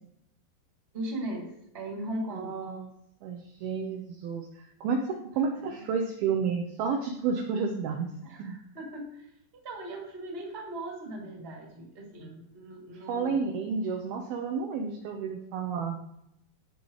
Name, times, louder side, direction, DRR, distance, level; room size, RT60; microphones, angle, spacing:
voice 1, 0.9-2.6 5.3-5.9 8.2-13.4, right 1 dB, 20° right, -2 dB, 1.5 m, -39 dB
voice 2, 2.3-2.9 3.2-4.5 4.8-8.1 8.4-8.6 13.1-16.0, right 5 dB, 80° right, 3 dB, 2.2 m, -31 dB
16.0 x 5.4 x 3.2 m, 0.78 s
omnidirectional pair, 5.4 m